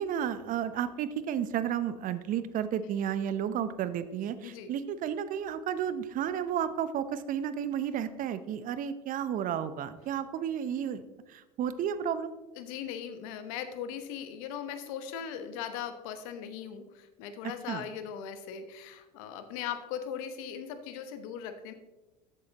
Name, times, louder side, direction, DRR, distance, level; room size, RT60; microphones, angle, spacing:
voice 1, 0.0-11.0 11.3-12.3 17.7-17.8, right 9 dB, 45° right, 13 dB, 0.7 m, -32 dB
voice 2, 4.4-4.7 12.6-21.7, left 8 dB, 65° left, 9 dB, 1.1 m, -39 dB
14.0 x 7.6 x 2.9 m, 1.1 s
hypercardioid pair, 75°, 19 cm